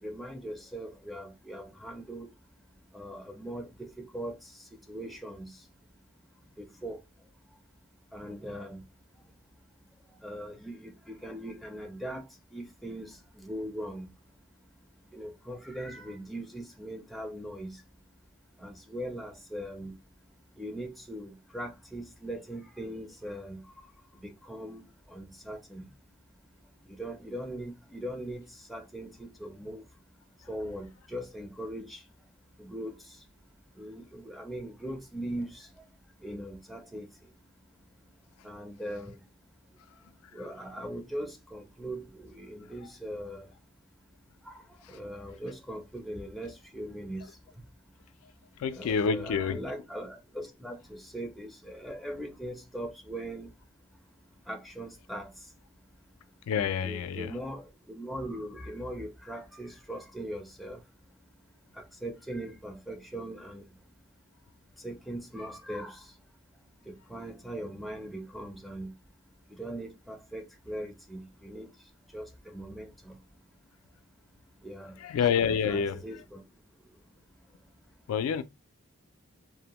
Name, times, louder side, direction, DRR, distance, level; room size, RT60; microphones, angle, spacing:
voice 1, 0.0-2.3 2.9-4.4 4.9-5.5 6.6-7.0 8.1-8.8 10.2-12.2 12.5-14.1 15.1-17.8 18.6-19.9 20.6-23.6 24.2-25.9 26.9-28.4 28.7-29.8 30.5-32.0 32.6-32.9 33.8-35.7 36.2-37.1 38.4-39.2 40.3-43.5 44.5-44.6 44.9-47.2 48.7-53.5 54.5-55.3 56.8-60.8 61.7-63.6 64.8-66.0 66.9-68.9 69.5-71.7 72.1-73.2 74.6-75.0 75.4-76.4, right 1 dB, ahead, 0.4 m, -40 dB
voice 2, 48.6-49.6 56.5-57.4 75.0-76.0 78.1-78.4, left 7 dB, 85° left, 0.3 m, -28 dB
2.6 x 2.0 x 2.9 m
head